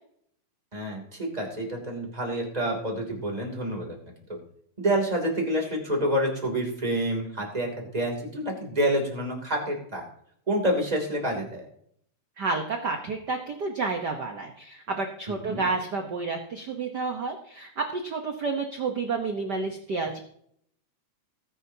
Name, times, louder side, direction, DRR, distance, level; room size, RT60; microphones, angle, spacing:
voice 1, 0.7-4.0 4.3-4.4 4.8-10.0 10.5-11.6 15.4-15.7, right 1 dB, 15° right, 0 dB, 2.7 m, -28 dB
voice 2, 12.4-20.2, right 4 dB, 90° right, 4 dB, 0.9 m, -30 dB
19.0 x 10.0 x 2.8 m, 0.67 s
omnidirectional pair, 3.5 m